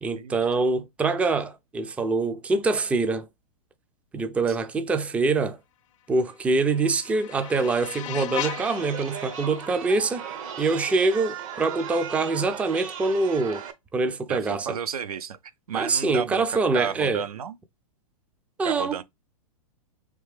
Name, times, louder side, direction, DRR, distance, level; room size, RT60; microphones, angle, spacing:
voice 1, 0.0-3.3 4.1-5.6 6.1-10.2 10.6-13.6 13.9-14.8 15.7-17.2 18.6-19.0, right 3 dB, 5° right, 0.3 m, -24 dB
sound 1, 6.1-11.1, left 12 dB, 60° left, 0.5 m, -38 dB
Chatter, 8.4-13.7, right 8 dB, 65° right, 0.8 m, -37 dB
voice 2, 14.3-15.4 15.7-17.6 18.6-19.0, right 7 dB, 85° right, 0.5 m, -32 dB
3.4 x 3.2 x 3.2 m
hypercardioid pair, 120°, 19 cm